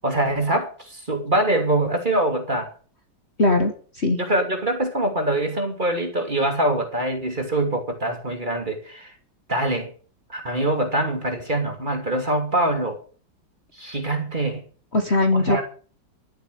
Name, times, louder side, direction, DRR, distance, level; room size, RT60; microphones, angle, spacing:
voice 1, 0.0-2.7 4.2-9.1 9.5-9.9 10.3-13.0 13.7-14.6 15.3-15.6, right 1 dB, 25° right, 4 dB, 3.0 m, -24 dB
voice 2, 3.4-4.2 14.9-15.6, left 2 dB, 35° left, 5 dB, 1.8 m, -20 dB
13.0 x 8.0 x 8.6 m, 0.41 s
omnidirectional pair, 2.1 m